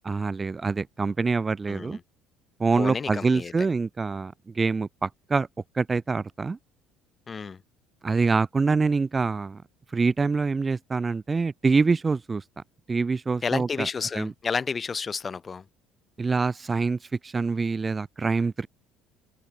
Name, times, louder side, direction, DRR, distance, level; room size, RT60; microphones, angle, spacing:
voice 1, 0.0-2.0 2.6-5.5 5.8-6.6 8.0-9.6 9.9-12.4 12.9-13.9 14.1-14.3 16.2-18.7, right 4 dB, 25° right, 0.3 m, -25 dB
voice 2, 1.7-2.0 2.8-3.5 7.3-7.6 13.4-15.6, left 5 dB, 30° left, 1.4 m, -31 dB
hypercardioid pair, 70°, 0 cm